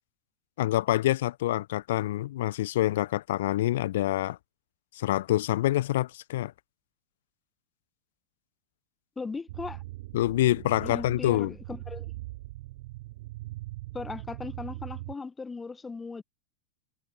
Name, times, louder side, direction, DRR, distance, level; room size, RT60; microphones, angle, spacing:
voice 1, 0.6-4.4 4.9-6.5 10.1-11.5, left 14 dB, 55° left, 1.2 m, -26 dB
voice 2, 9.2-9.8 10.8-12.1 13.9-16.2, left 4 dB, 15° left, 1.6 m, -38 dB
sound 1, 9.5-15.1, right 19 dB, 50° right, 1.0 m, -41 dB
figure-of-eight pair, 90°, 0 cm